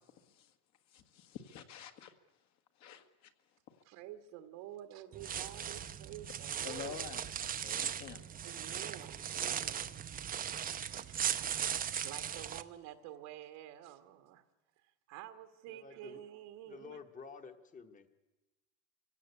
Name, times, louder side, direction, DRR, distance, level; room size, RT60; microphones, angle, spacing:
voice 1, 0.9-2.1 2.8-3.3 3.7-3.8 6.6-7.2 7.6-8.3, left 9 dB, 55° left, 1.9 m, -48 dB
voice 2, 3.8-7.0 8.4-10.0 10.7-14.4 14.8-17.0, right 12 dB, 80° right, 1.8 m, -50 dB
sound 1, 5.1-12.6, right 9 dB, 25° right, 0.7 m, -38 dB
voice 3, 15.7-16.2 16.6-18.1, left 5 dB, 25° left, 1.4 m, -51 dB
24.0 x 16.5 x 8.3 m
cardioid pair, 135°, 32 cm